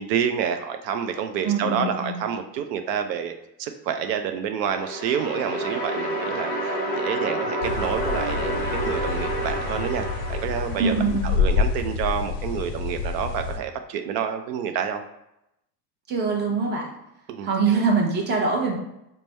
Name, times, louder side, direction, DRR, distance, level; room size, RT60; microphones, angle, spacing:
voice 1, 0.0-3.3 3.6-10.9 11.2-15.0 17.3-17.8, right 8 dB, 80° right, 7 dB, 0.6 m, -28 dB
voice 2, 1.4-2.2 10.8-11.3 16.1-16.9 17.4-18.8, right 4 dB, 20° right, 0 dB, 0.7 m, -23 dB
sound 1, 4.6-11.7, right 1 dB, 20° left, 1.0 m, -29 dB
sound 2, 7.6-13.6, left 5 dB, 55° left, 0.5 m, -28 dB
3.3 x 2.2 x 4.0 m, 0.85 s
supercardioid pair, 110°, 49 cm